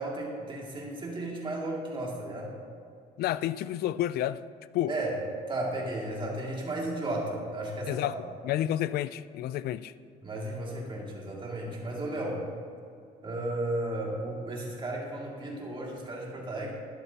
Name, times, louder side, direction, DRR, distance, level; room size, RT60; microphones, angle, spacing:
voice 1, 0.0-2.5 4.9-5.2 5.5-8.2 10.2-12.4 13.2-16.7, right 1 dB, 30° right, -2 dB, 2.4 m, -34 dB
voice 2, 3.2-4.4 4.7-4.9 7.9-8.2 8.4-9.9, left 12 dB, 70° left, 16 dB, 0.4 m, -30 dB
12.0 x 11.0 x 2.9 m, 2.4 s
cardioid pair, 110°, 17 cm